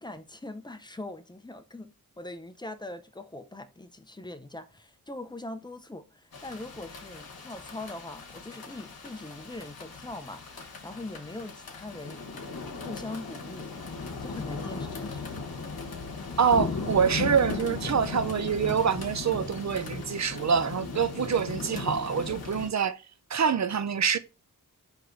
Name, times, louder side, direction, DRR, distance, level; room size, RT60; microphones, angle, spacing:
voice 1, 0.0-12.3 12.8-13.8 14.2-15.3, left 2 dB, 10° left, 0.6 m, -42 dB
sound 1, 6.3-22.7, left 4 dB, 80° left, 1.0 m, -37 dB
voice 2, 16.4-23.0 23.3-24.2, right 7 dB, 50° right, 0.5 m, -26 dB
4.6 x 3.1 x 3.8 m
wide cardioid pair, 50°, 36 cm